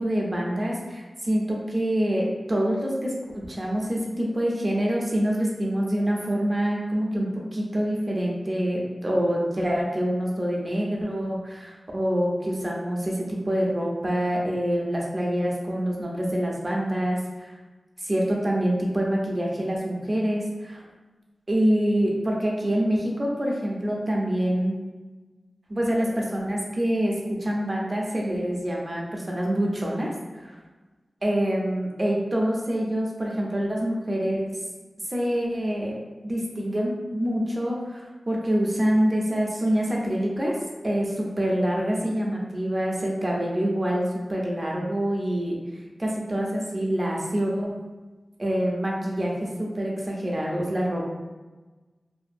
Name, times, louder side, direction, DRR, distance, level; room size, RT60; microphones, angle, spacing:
voice 1, 0.0-3.1 3.5-17.5 18.0-20.8 21.5-24.8 25.7-30.1 30.4-30.5 31.2-34.6 35.1-35.9 36.2-40.6 40.8-45.6 46.0-47.7 48.4-51.1, equal, 35° right, -2 dB, 0.6 m, -26 dB
2.7 x 2.4 x 2.5 m, 1.2 s
wide cardioid pair, 70°, 0 cm